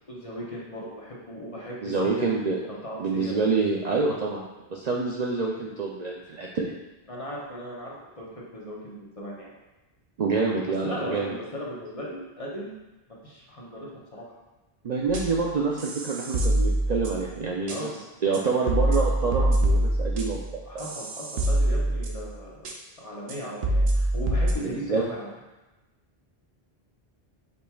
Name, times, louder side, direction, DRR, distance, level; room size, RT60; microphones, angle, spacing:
voice 1, 0.1-2.3 2.7-3.3 7.1-9.5 10.8-12.8 13.2-14.4 17.7-18.0 20.6-22.6 23.0-25.3, equal, 35° left, -5 dB, 1.0 m, -37 dB
voice 2, 1.8-2.6 3.0-4.4 4.7-6.7 10.2-11.3 14.8-17.9 18.2-20.9 24.6-25.0, right 4 dB, 55° right, -2 dB, 0.5 m, -27 dB
sound 1, 15.1-15.4 15.8-17.3 17.7-17.8 18.3-18.4 18.7-22.3 22.6-22.7 23.3-23.4 23.6-24.5, right 1 dB, 85° right, 0.9 m, -25 dB
5.2 x 4.4 x 2.3 m, 1.1 s
omnidirectional pair, 1.0 m